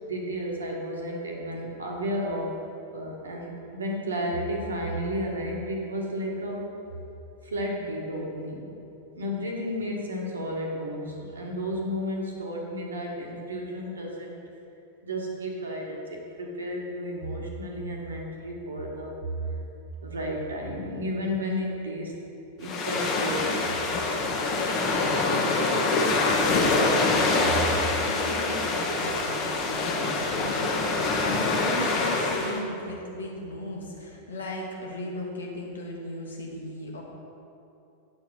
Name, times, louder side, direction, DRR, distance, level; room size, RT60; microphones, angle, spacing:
voice 1, 0.0-2.6 2.9-6.7 7.4-8.7 9.1-14.4 15.0-19.4 20.0-22.1 22.6-24.2, equal, 70° right, -1 dB, 1.4 m, -32 dB
sound 1, 22.6-32.6, left 3 dB, 35° left, 1.1 m, -25 dB
voice 2, 27.9-37.0, left 1 dB, 70° left, -1 dB, 1.4 m, -36 dB
9.0 x 4.6 x 5.8 m, 2.8 s
figure-of-eight pair, 90°, 0 cm